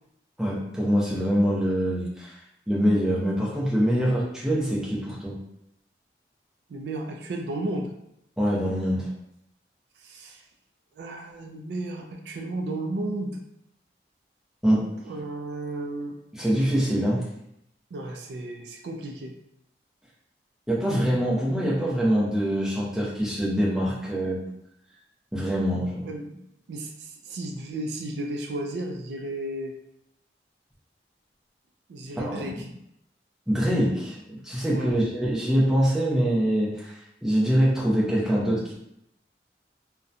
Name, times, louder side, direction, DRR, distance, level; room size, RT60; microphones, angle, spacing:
voice 1, 0.4-2.4 2.7-5.4 8.4-9.1 14.6-14.9 16.3-17.2 20.7-24.4 25.3-26.0 32.1-32.5 33.5-38.7, equal, 5° right, -6 dB, 0.5 m, -24 dB
voice 2, 6.7-7.9 10.0-10.4 11.0-13.4 15.0-16.2 17.9-19.4 26.0-26.4 26.7-29.7 31.9-32.7 34.7-35.0, right 2 dB, 70° right, 3 dB, 0.3 m, -33 dB
2.7 x 2.1 x 2.4 m, 0.77 s
head